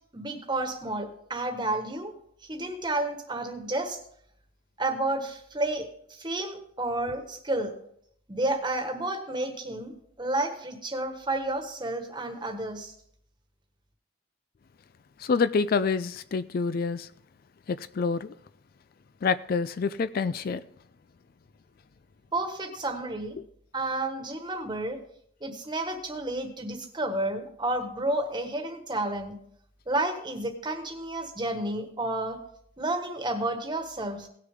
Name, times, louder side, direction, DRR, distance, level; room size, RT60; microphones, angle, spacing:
voice 1, 0.1-2.1 2.4-4.0 4.8-7.7 8.3-12.9 22.3-23.3 23.7-25.0 25.4-29.3 29.9-32.4 32.8-34.3, right 2 dB, 25° right, 1.4 m, -31 dB
voice 2, 15.2-17.1 17.7-18.3 19.2-20.6, left 5 dB, 50° left, 0.4 m, -27 dB
18.0 x 6.6 x 3.6 m
head